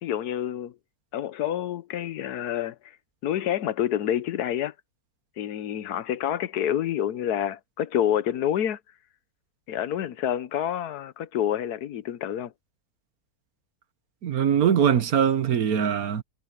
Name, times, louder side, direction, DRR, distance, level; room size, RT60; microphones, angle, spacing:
voice 1, 0.0-0.8 1.1-2.8 3.2-4.7 5.4-8.8 9.7-12.5, left 10 dB, 75° left, 1.3 m, -28 dB
voice 2, 14.2-16.2, right 8 dB, 65° right, 1.5 m, -22 dB
omnidirectional pair, 1.7 m